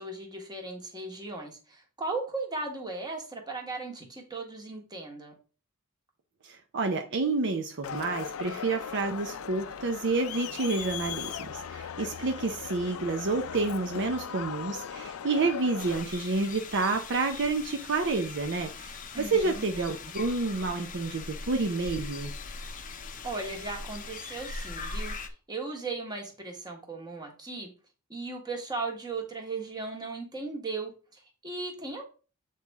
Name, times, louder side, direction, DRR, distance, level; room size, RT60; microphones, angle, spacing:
voice 1, 0.0-5.3 19.1-19.6 23.2-25.1 25.5-27.7 28.1-32.0, right 3 dB, 20° right, 1.6 m, -37 dB
voice 2, 6.4-22.3, right 3 dB, 55° right, 0.6 m, -29 dB
Crowd, 7.8-16.0, left 7 dB, 70° left, 0.5 m, -38 dB
sound 1, 15.8-25.3, left 4 dB, 40° left, 0.7 m, -40 dB
7.9 x 4.2 x 3.5 m
head